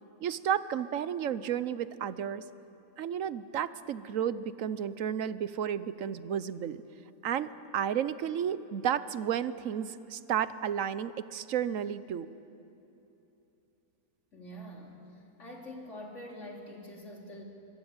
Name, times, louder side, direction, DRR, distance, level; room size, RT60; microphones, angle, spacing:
voice 1, 0.2-2.4 3.0-6.8 7.2-12.3, right 9 dB, 65° right, 15 dB, 1.1 m, -32 dB
voice 2, 14.3-15.0 15.4-17.4, equal, 50° left, 0 dB, 3.3 m, -45 dB
24.0 x 23.0 x 8.9 m, 2.9 s
omnidirectional pair, 1.6 m